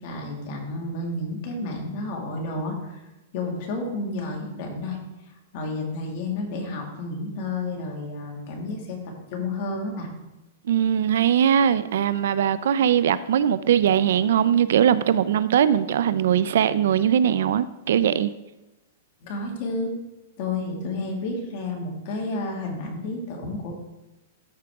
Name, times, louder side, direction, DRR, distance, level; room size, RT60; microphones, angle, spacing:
voice 1, 0.0-3.0 3.3-5.0 5.5-9.0 9.3-10.1 19.2-19.9 20.4-23.7, left 2 dB, 45° left, 2.0 m, -31 dB
voice 2, 10.7-18.3, right 9 dB, 70° right, 0.4 m, -20 dB
13.0 x 4.9 x 3.5 m
hypercardioid pair, 155°, 0 cm